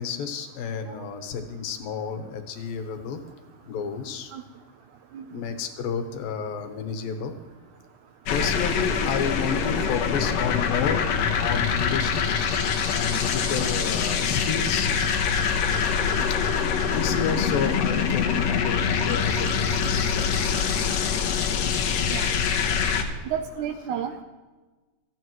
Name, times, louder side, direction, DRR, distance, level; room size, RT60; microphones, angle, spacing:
voice 1, 0.0-3.2 3.7-4.3 5.3-7.3 8.3-12.2 12.9-15.0 16.3-16.4 16.9-20.7, left 6 dB, 80° left, 6 dB, 2.8 m, -31 dB
sound 1, 8.3-23.0, left 6 dB, 65° left, 1.9 m, -24 dB
voice 2, 23.3-24.2, right 8 dB, 75° right, 7 dB, 1.8 m, -31 dB
28.5 x 9.7 x 3.1 m, 1.3 s
omnidirectional pair, 4.1 m